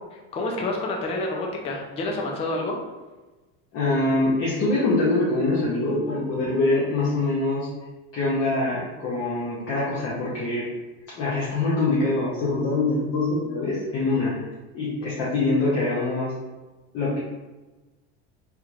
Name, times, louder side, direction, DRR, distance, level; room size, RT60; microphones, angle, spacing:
voice 1, 0.1-2.8, left 2 dB, 20° left, 0 dB, 0.3 m, -28 dB
voice 2, 3.7-7.7 8.1-10.7 11.2-14.4 14.7-16.3 16.9-17.2, left 2 dB, 40° left, -7 dB, 0.8 m, -24 dB
3.4 x 3.0 x 2.3 m, 1.2 s
supercardioid pair, 140°, 35 cm